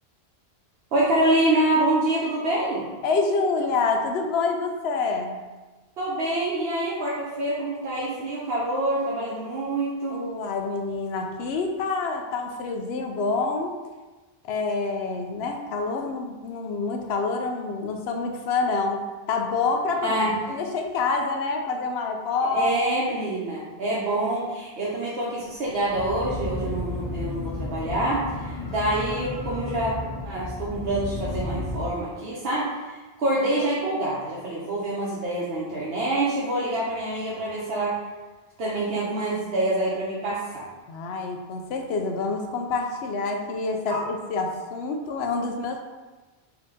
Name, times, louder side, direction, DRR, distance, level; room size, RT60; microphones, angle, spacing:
voice 1, 0.9-2.9 6.0-10.2 20.0-20.3 22.4-29.9 30.2-37.9 38.6-40.6 43.9-44.0, right 1 dB, 75° right, -7 dB, 1.1 m, -26 dB
voice 2, 3.0-5.4 10.1-13.7 14.4-19.0 19.3-20.2 20.5-22.7 40.9-45.8, left 4 dB, 85° left, 3 dB, 0.9 m, -27 dB
sound 1, 25.4-31.9, left 2 dB, 50° left, 0.6 m, -33 dB
4.8 x 2.9 x 3.6 m, 1.2 s
omnidirectional pair, 1.0 m